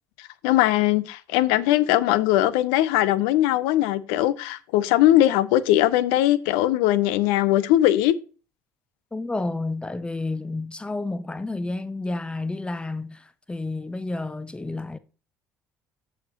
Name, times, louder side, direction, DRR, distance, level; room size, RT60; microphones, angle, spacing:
voice 1, 0.4-8.1, left 14 dB, 65° left, 0.5 m, -20 dB
voice 2, 9.1-15.0, left 2 dB, 10° left, 0.7 m, -30 dB
13.0 x 5.0 x 2.9 m
figure-of-eight pair, 55°, 9 cm